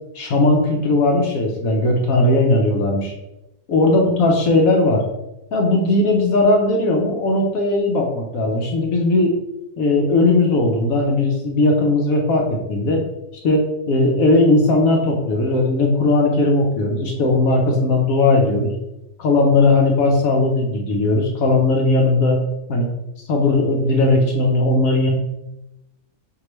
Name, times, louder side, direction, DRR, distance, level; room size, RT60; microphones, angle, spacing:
voice 1, 0.1-3.1 3.7-5.0 5.5-9.4 9.8-13.0 13.4-18.7 19.2-22.4 22.7-22.9 23.3-25.1, left 2 dB, 70° left, 1 dB, 1.1 m, -17 dB
4.8 x 2.8 x 3.0 m, 0.89 s
omnidirectional pair, 1.6 m